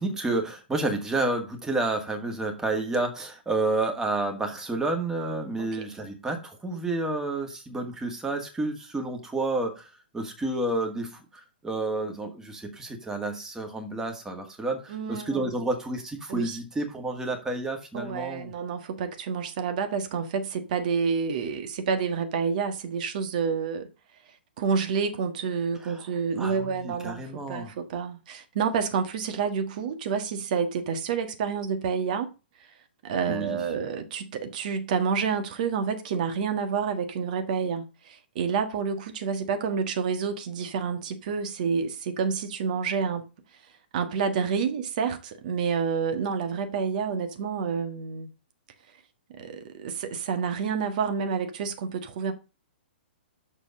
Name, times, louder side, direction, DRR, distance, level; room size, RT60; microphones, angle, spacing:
voice 1, 0.0-9.9 10.1-18.5 25.8-26.0 26.4-27.7 33.3-33.6, right 2 dB, 10° right, 1.9 m, -30 dB
voice 2, 14.9-15.5 16.3-16.6 17.9-23.9 24.6-27.2 27.5-32.3 33.0-43.2 43.9-48.3 49.3-52.3, right 6 dB, 50° right, 1.6 m, -29 dB
6.7 x 5.0 x 6.4 m
figure-of-eight pair, 115°, 6 cm